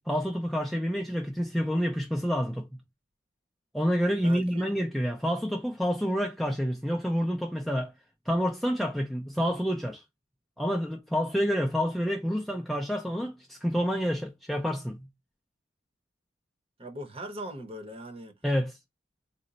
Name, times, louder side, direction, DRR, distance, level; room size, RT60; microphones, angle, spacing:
voice 1, 0.0-2.7 3.7-7.9 8.3-10.0 10.6-15.0 18.4-18.8, equal, ahead, 0.4 m, -28 dB
voice 2, 4.1-4.7 16.8-18.3, right 1 dB, 25° right, 0.7 m, -40 dB
4.0 x 2.1 x 3.8 m
head